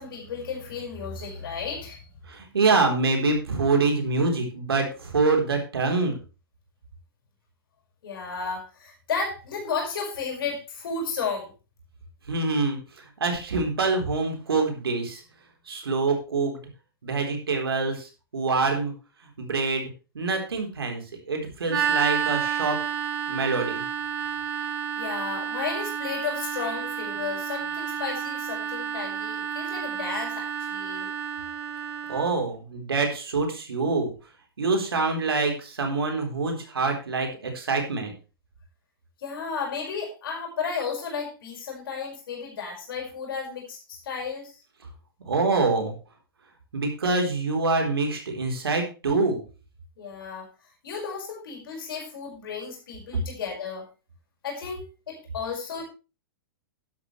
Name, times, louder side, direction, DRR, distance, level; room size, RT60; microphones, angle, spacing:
voice 1, 0.0-2.1 8.0-11.5 25.0-31.1 39.2-44.6 50.0-50.5 50.8-53.9 54.4-55.8, left 5 dB, 70° left, 0 dB, 5.5 m, -33 dB
voice 2, 2.3-6.2 12.3-15.2 15.7-16.6 17.0-18.9 19.4-19.9 20.1-22.8 23.3-23.8 32.1-34.1 34.6-38.1 45.3-45.9 46.7-49.4, right 3 dB, 85° right, 3 dB, 3.9 m, -25 dB
sound 1, 21.7-32.3, right 8 dB, 65° right, 4.7 m, -30 dB
11.5 x 11.0 x 3.3 m, 0.32 s
hypercardioid pair, 115°, 12 cm